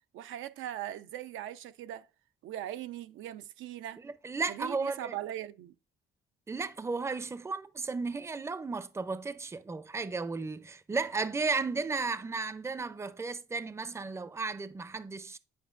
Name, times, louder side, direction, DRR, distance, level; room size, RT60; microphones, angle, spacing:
voice 1, 0.1-2.1 2.4-4.0 4.5-5.7, right 12 dB, 85° right, 0.5 m, -40 dB
voice 2, 4.0-5.1 6.5-15.4, right 4 dB, 15° right, 0.4 m, -34 dB
9.5 x 5.1 x 2.4 m
cardioid pair, 90°, 20 cm